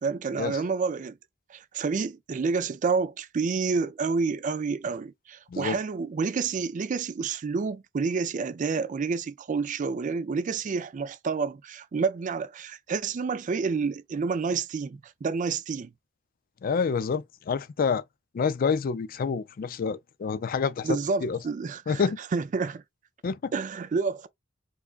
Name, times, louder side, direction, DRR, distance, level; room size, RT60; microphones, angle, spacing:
voice 1, 0.0-1.2 1.5-15.9 20.8-22.8 23.5-24.3, right 5 dB, 40° right, 0.4 m, -29 dB
voice 2, 16.6-18.0 18.3-21.4 21.9-22.2 23.2-23.5, left 5 dB, 45° left, 0.4 m, -28 dB
4.5 x 2.3 x 2.4 m
head